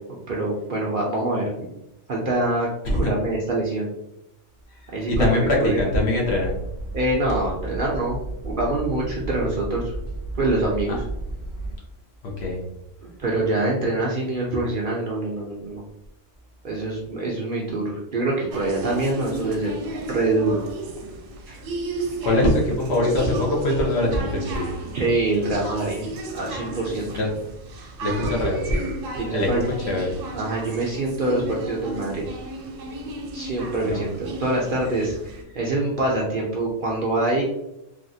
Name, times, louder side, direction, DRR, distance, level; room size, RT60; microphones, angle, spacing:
voice 1, 0.1-1.7 2.1-3.9 4.9-5.8 6.9-8.2 8.4-9.9 10.3-11.0 13.0-15.8 16.6-20.6 21.5-21.6 24.9-27.1 29.1-29.6 30.3-32.3 33.3-37.4, right 2 dB, 55° right, -3 dB, 0.6 m, -25 dB
voice 2, 5.1-6.5 12.2-12.6 22.2-24.7 27.2-27.3 28.0-28.8 29.3-29.5 29.9-30.1 33.8-34.1, left 1 dB, 60° left, -1 dB, 1.0 m, -22 dB
sound 1, 6.2-11.8, right 2 dB, 85° left, 1.3 m, -33 dB
sound 2, 18.5-35.4, right 2 dB, 80° right, 1.0 m, -34 dB
3.3 x 2.4 x 2.6 m, 0.84 s
omnidirectional pair, 1.3 m